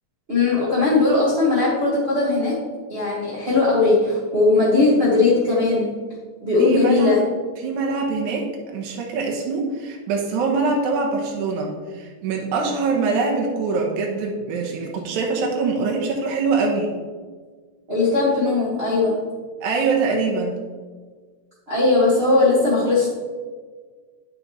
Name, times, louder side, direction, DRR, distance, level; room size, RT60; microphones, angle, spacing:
voice 1, 0.3-2.6 2.9-5.9 6.4-7.2 17.9-19.3 21.7-23.1, left 3 dB, 35° right, -7 dB, 0.9 m, -19 dB
voice 2, 6.6-7.2 7.6-16.9 19.6-20.6, right 4 dB, 75° right, 0 dB, 2.3 m, -24 dB
10.5 x 5.3 x 3.0 m, 1.5 s
omnidirectional pair, 3.5 m